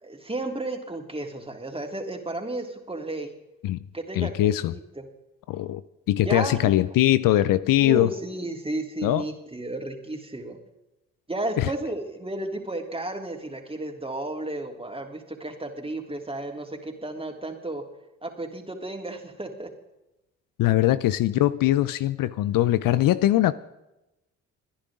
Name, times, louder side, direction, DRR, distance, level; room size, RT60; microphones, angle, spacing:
voice 1, 0.0-3.3 3.9-5.1 6.2-6.7 7.8-10.6 11.3-17.8 18.2-19.7, right 2 dB, 15° right, 3 dB, 3.3 m, -33 dB
voice 2, 4.1-4.7 5.5-5.8 6.1-8.2 9.0-9.2 11.6-11.7 20.6-23.5, left 14 dB, 70° left, 16 dB, 0.7 m, -21 dB
25.0 x 10.5 x 3.7 m, 0.94 s
hypercardioid pair, 50°, 35 cm